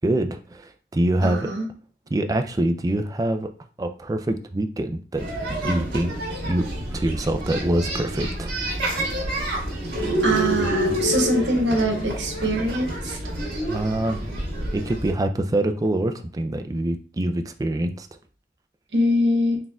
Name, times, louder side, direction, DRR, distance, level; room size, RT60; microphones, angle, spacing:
voice 1, 0.0-1.5 2.1-3.5 3.8-6.1 6.4-6.7 6.9-8.5 13.7-14.3 14.7-18.1, right 1 dB, 20° right, 7 dB, 0.3 m, -25 dB
voice 2, 1.2-1.7 10.2-13.2 18.9-19.6, equal, 85° right, 2 dB, 1.1 m, -23 dB
sound 1, 5.2-15.1, right 1 dB, 60° right, 1.7 m, -28 dB
4.2 x 3.6 x 2.3 m, 0.40 s
head